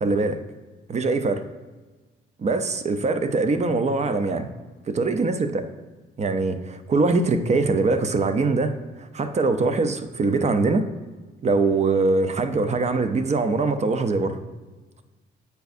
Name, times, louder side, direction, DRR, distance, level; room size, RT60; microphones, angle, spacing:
voice 1, 0.0-0.4 0.9-1.4 2.4-4.5 4.9-5.6 6.2-10.8 11.4-14.4, right 3 dB, 35° right, 9 dB, 0.6 m, -22 dB
8.0 x 4.6 x 2.6 m, 1.3 s
cardioid pair, 90°, 20 cm